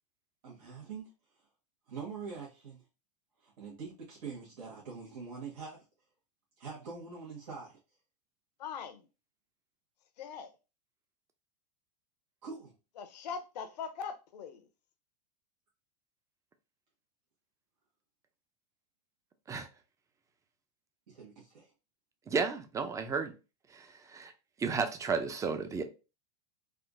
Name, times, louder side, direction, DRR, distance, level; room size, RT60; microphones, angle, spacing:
voice 1, 0.4-1.1 1.9-2.8 3.4-5.8 6.6-7.8 12.4-12.7 21.1-21.7, right 5 dB, 80° right, 1.2 m, -44 dB
voice 2, 8.6-9.1 10.2-10.5 13.0-14.7, left 6 dB, 85° left, 0.7 m, -41 dB
voice 3, 22.3-23.3 23.7-24.3 24.6-25.8, right 5 dB, 15° right, 0.4 m, -33 dB
3.5 x 2.4 x 2.4 m
hypercardioid pair, 115°, 21 cm